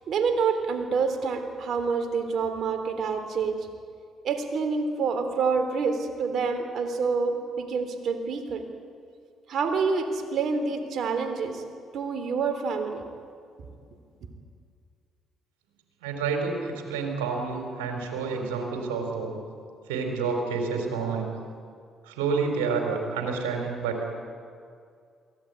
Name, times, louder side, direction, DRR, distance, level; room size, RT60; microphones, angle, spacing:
voice 1, 0.1-3.6 4.2-8.6 9.5-11.6 11.9-13.0, right 5 dB, 65° right, 6 dB, 3.4 m, -27 dB
voice 2, 16.0-19.4 19.9-21.3 22.1-24.1, right 5 dB, 90° right, 2 dB, 4.3 m, -29 dB
22.5 x 17.0 x 9.7 m, 2.3 s
hypercardioid pair, 55°, 0 cm